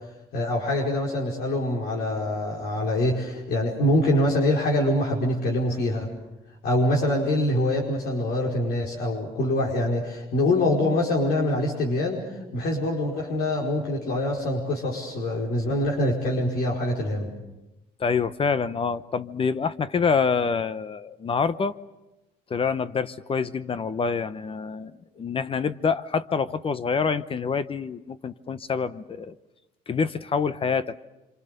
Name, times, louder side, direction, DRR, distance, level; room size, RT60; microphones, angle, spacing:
voice 1, 0.3-6.1 6.6-12.2 12.5-17.3, left 1 dB, 70° left, -3 dB, 5.0 m, -24 dB
voice 2, 18.0-21.7 22.5-29.3 29.9-31.0, left 5 dB, 35° left, 14 dB, 0.9 m, -26 dB
27.0 x 26.0 x 6.8 m, 1.0 s
cardioid pair, 110°, 17 cm